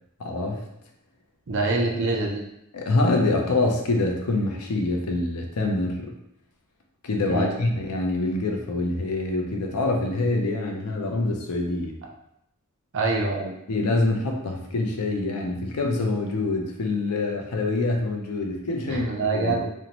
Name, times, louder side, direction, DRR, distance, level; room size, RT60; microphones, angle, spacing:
voice 1, 0.2-0.6 2.7-6.1 7.0-12.0 13.7-19.7, left 2 dB, 85° left, 2 dB, 0.5 m, -25 dB
voice 2, 1.5-2.4 7.3-7.6 12.9-13.5 18.9-19.7, right 3 dB, 55° right, 0 dB, 0.5 m, -25 dB
2.6 x 2.1 x 2.9 m, 0.80 s
head